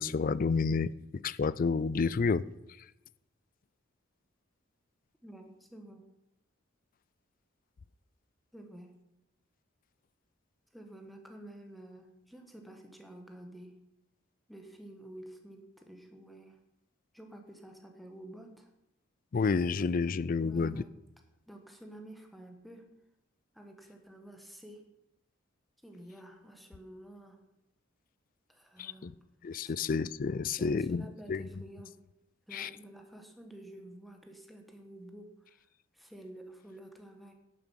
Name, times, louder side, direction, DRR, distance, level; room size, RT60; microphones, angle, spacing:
voice 1, 0.0-2.4 19.3-20.8 28.8-29.1 29.4-31.4 32.5-32.7, left 4 dB, 40° left, 19 dB, 0.4 m, -30 dB
voice 2, 5.2-6.1 8.5-9.0 10.7-13.8 14.5-16.6 17.1-18.7 20.4-20.9 21.5-22.9 23.5-24.9 25.8-27.4 28.5-29.1 29.7-29.8 30.5-31.9 32.5-35.6 35.9-37.3, right 1 dB, ahead, 3 dB, 1.4 m, -50 dB
11.0 x 9.0 x 5.7 m, 0.85 s
head